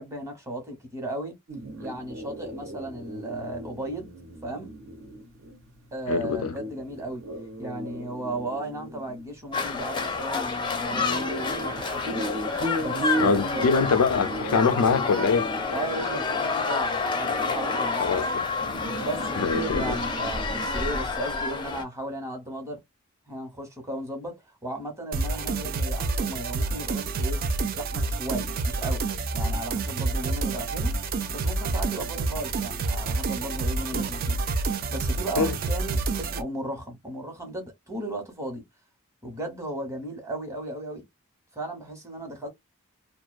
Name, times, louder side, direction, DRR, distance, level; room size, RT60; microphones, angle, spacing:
voice 1, 0.0-1.4 1.8-4.1 4.4-4.7 5.9-7.2 7.6-12.2 12.7-13.8 15.7-18.3 19.0-22.8 23.3-29.0 29.3-30.9 31.3-38.6 39.2-41.0 41.5-42.5, right 1 dB, 15° right, 1.0 m, -35 dB
sound 1, 1.5-21.1, right 1 dB, 60° right, 0.8 m, -37 dB
voice 2, 6.1-6.6 13.2-15.5 18.0-18.4 19.4-19.9 33.9-34.0 35.4-35.6, left 5 dB, 80° left, 0.4 m, -24 dB
sound 2, 9.5-21.8, left 4 dB, 20° left, 0.5 m, -29 dB
sound 3, 25.1-36.4, right 3 dB, 40° right, 0.3 m, -28 dB
2.4 x 2.2 x 2.3 m
head